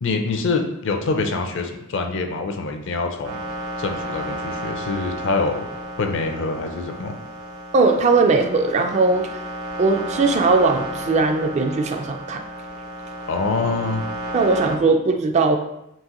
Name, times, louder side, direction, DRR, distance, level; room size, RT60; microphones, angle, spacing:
voice 1, 0.0-3.4 3.8-5.7 6.0-7.2 13.3-14.0, left 3 dB, 55° left, 5 dB, 0.5 m, -25 dB
sound 1, 3.2-14.8, right 1 dB, 85° right, 1.0 m, -32 dB
voice 2, 7.7-9.3 9.8-12.4 14.3-15.6, right 3 dB, 30° right, 5 dB, 0.3 m, -19 dB
4.6 x 3.1 x 2.9 m, 0.84 s
head